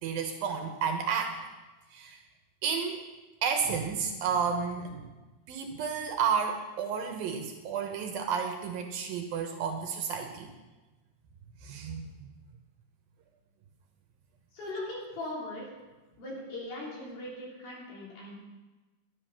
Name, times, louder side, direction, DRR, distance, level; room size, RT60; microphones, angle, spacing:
voice 1, 0.0-1.4 1.9-2.2 2.6-3.0 3.4-5.1 5.5-10.5 11.6-12.3, right 6 dB, 75° right, 4 dB, 2.5 m, -31 dB
voice 2, 14.5-15.7 16.2-18.3, left 1 dB, 65° left, -5 dB, 5.3 m, -39 dB
11.0 x 10.5 x 5.8 m, 1.1 s
omnidirectional pair, 4.6 m